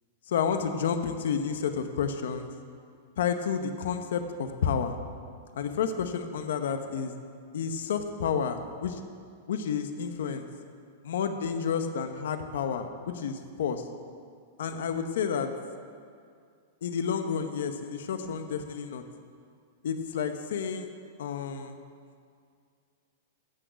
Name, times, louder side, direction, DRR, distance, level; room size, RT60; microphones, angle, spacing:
voice 1, 0.3-2.5 3.2-5.0 5.5-7.1 7.5-8.9 9.5-10.5 11.0-13.8 14.6-15.5 16.8-19.0 19.8-20.9 21.2-21.8, left 7 dB, 75° left, 7 dB, 1.0 m, -30 dB
14.0 x 6.3 x 8.1 m, 2.3 s
supercardioid pair, 170°, 0 cm